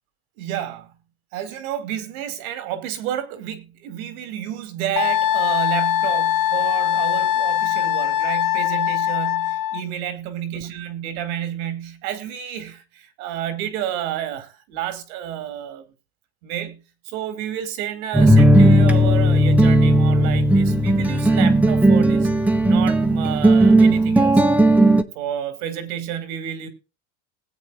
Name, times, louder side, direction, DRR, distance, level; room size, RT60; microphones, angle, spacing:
voice 1, 0.4-0.9 1.3-15.9 16.4-22.3 22.7-24.4 25.1-26.7, right 10 dB, 75° right, 2.6 m, -30 dB
Wind instrument woodwind instrument, 5.0-9.8, left 11 dB, 80° left, 1.3 m, -21 dB
sound 1, 18.1-25.0, right 1 dB, 5° right, 0.9 m, -15 dB
20.0 x 8.4 x 2.4 m
supercardioid pair, 125°, 42 cm